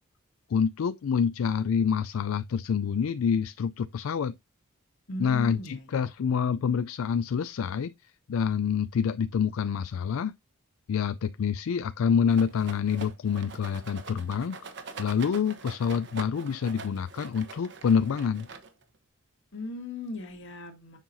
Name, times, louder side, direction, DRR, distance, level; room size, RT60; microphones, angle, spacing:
voice 1, 0.5-4.4 5.2-7.9 8.3-10.3 10.9-14.6 15.0-18.5, left 6 dB, 80° left, 0.4 m, -27 dB
voice 2, 5.1-5.8 19.5-21.0, left 3 dB, 65° left, 1.8 m, -37 dB
Rattle, 12.3-19.0, right 4 dB, 60° right, 1.0 m, -44 dB
7.1 x 5.6 x 2.6 m
head